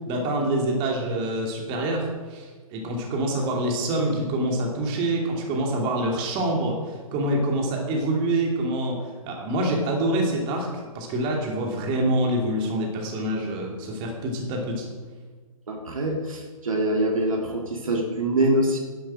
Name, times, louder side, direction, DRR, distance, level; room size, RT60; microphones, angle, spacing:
voice 1, 0.1-10.7 10.9-14.8, right 1 dB, 25° right, 0 dB, 2.8 m, -26 dB
voice 2, 15.7-18.8, right 1 dB, 65° right, 2 dB, 2.2 m, -24 dB
11.5 x 10.0 x 6.4 m, 1.4 s
figure-of-eight pair, 125°, 19 cm